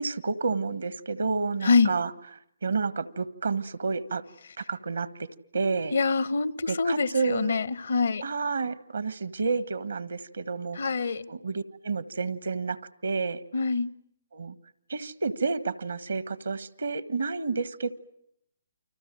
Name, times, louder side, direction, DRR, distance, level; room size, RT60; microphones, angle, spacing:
voice 1, 0.0-2.1 2.6-4.2 4.6-5.3 5.5-5.9 6.7-7.5 8.2-10.8 11.3-12.8 13.0-13.4 14.3-14.5 14.9-17.9, right 4 dB, 75° right, 15 dB, 1.5 m, -30 dB
voice 2, 5.9-8.2 10.7-11.3 13.5-13.9, left 4 dB, 70° left, 19 dB, 1.0 m, -25 dB
29.5 x 25.0 x 7.7 m, 0.74 s
figure-of-eight pair, 135°, 0 cm